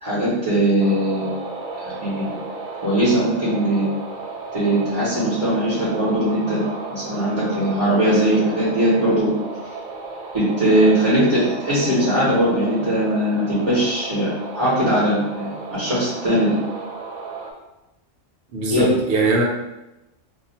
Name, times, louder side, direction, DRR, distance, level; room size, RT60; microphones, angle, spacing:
voice 1, 0.0-1.4 1.8-2.3 2.8-3.9 4.5-6.6 6.9-9.3 10.3-16.6 18.7-18.8, right 1 dB, 25° right, -10 dB, 1.1 m, -20 dB
sound 1, 0.8-17.5, right 4 dB, 85° right, 1.0 m, -34 dB
voice 2, 18.5-19.4, right 2 dB, 60° right, -1 dB, 0.9 m, -20 dB
2.7 x 2.3 x 4.1 m, 0.98 s
omnidirectional pair, 1.4 m